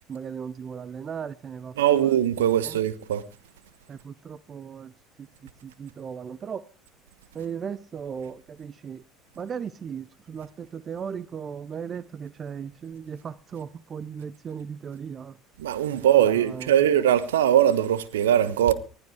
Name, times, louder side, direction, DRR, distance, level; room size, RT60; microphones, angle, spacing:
voice 1, 0.1-2.1 2.6-2.8 3.9-4.9 5.2-5.3 5.6-6.7 7.3-9.0 9.4-15.4 15.9-16.9, right 7 dB, 35° right, 0.7 m, -37 dB
voice 2, 1.8-3.2 15.6-18.7, right 10 dB, 70° right, 1.2 m, -21 dB
20.0 x 12.0 x 4.9 m
figure-of-eight pair, 60°, 0 cm